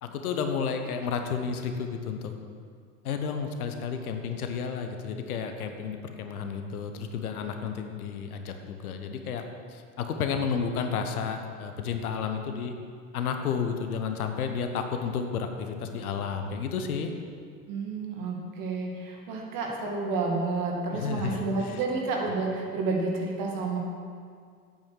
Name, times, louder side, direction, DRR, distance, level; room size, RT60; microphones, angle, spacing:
voice 1, 0.0-2.3 3.0-9.4 9.7-12.8 13.1-17.1 20.9-21.8, left 6 dB, 70° left, 6 dB, 1.1 m, -32 dB
voice 2, 17.7-23.8, right 3 dB, 45° right, 0 dB, 2.3 m, -30 dB
8.7 x 8.7 x 6.3 m, 2.1 s
figure-of-eight pair, 75°, 45 cm